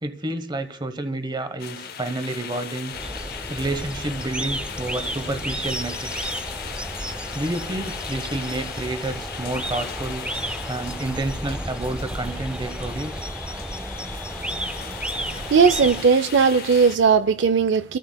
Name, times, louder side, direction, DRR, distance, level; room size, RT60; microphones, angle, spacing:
voice 1, 0.0-2.9 3.5-6.3 7.3-10.3 10.7-13.3, right 2 dB, 25° right, 0.9 m, -29 dB
sound 1, 1.6-17.0, left 7 dB, 55° left, 0.7 m, -37 dB
sound 2, 2.9-16.0, right 1 dB, 5° right, 0.4 m, -32 dB
sound 3, 10.1-15.6, left 3 dB, 40° left, 2.0 m, -45 dB
voice 2, 15.3-18.0, right 5 dB, 70° right, 0.4 m, -18 dB
28.5 x 13.0 x 2.3 m
head